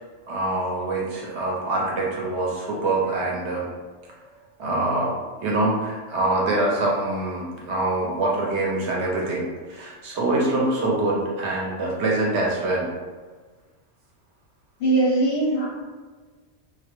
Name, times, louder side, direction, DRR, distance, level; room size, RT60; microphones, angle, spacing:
voice 1, 0.3-3.7 4.3-5.2 5.4-12.9, right 2 dB, 65° right, -3 dB, 0.8 m, -25 dB
voice 2, 14.8-15.7, right 2 dB, 60° left, -6 dB, 0.6 m, -20 dB
2.2 x 2.1 x 2.9 m, 1.4 s
omnidirectional pair, 1.4 m